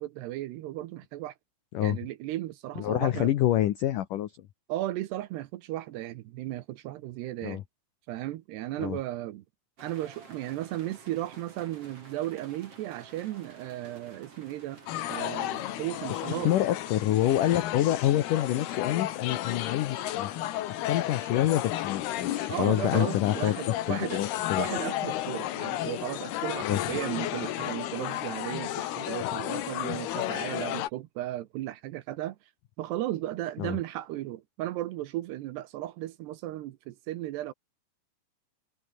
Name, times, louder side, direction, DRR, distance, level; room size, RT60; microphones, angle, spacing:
voice 1, 0.0-1.3 1.8-3.3 4.7-7.6 8.1-9.4 9.8-14.8 15.1-16.5 22.5-24.2 24.6-32.4 32.8-37.5, right 15 dB, 75° right, 2.8 m, -35 dB
voice 2, 2.8-4.5 7.4-7.6 8.8-9.0 16.4-20.3 20.7-24.7 26.6-26.8 33.6-33.8, left 13 dB, 90° left, 1.8 m, -27 dB
sound 1, 9.8-29.2, right 4 dB, 30° right, 5.4 m, -54 dB
sound 2, 14.9-30.9, left 13 dB, 65° left, 3.0 m, -33 dB
omnidirectional pair, 5.5 m